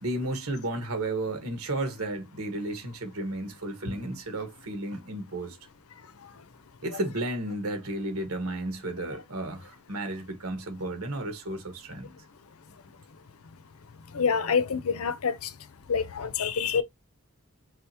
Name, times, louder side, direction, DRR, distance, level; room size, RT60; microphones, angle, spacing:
voice 1, 0.0-5.6 6.8-12.1, right 1 dB, 75° right, 1.5 m, -33 dB
voice 2, 14.1-15.5 15.9-16.8, left 6 dB, 70° left, 0.6 m, -26 dB
4.9 x 3.4 x 2.9 m
head